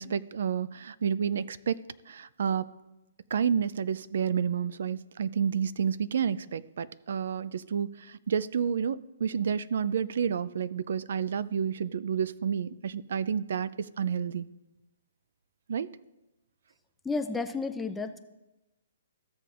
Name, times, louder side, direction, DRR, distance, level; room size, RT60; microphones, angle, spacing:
voice 1, 0.0-1.8 2.1-2.7 3.3-14.5 15.7-15.9, right 7 dB, 70° right, 18 dB, 0.3 m, -30 dB
voice 2, 17.0-18.2, left 4 dB, 10° left, 7 dB, 0.5 m, -32 dB
15.0 x 6.8 x 2.5 m, 1.0 s
hypercardioid pair, 140°, 0 cm